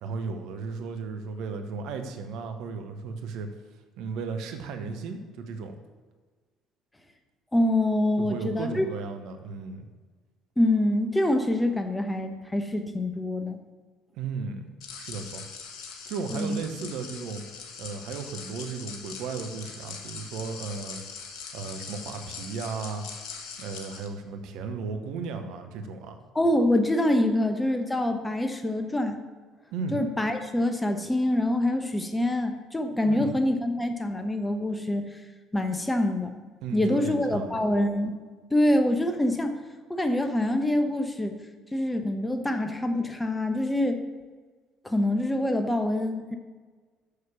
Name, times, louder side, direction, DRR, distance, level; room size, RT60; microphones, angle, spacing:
voice 1, 0.0-3.5 4.0-5.8 8.2-9.9 14.2-15.4 16.1-17.4 17.8-21.0 21.5-23.1 23.6-26.2 29.7-30.0 33.1-33.3 36.6-37.7, right 4 dB, 65° right, 6 dB, 0.9 m, -35 dB
voice 2, 7.5-8.9 10.6-13.6 16.3-16.6 26.3-29.2 29.9-35.1 35.5-36.3 36.7-38.2 38.5-39.6 39.9-41.3 41.7-44.0 44.8-46.4, left 1 dB, 10° left, 6 dB, 1.0 m, -25 dB
sound 1, 14.8-24.1, left 5 dB, 65° left, 1.2 m, -41 dB
6.7 x 6.5 x 7.0 m, 1.4 s
figure-of-eight pair, 55°, 0 cm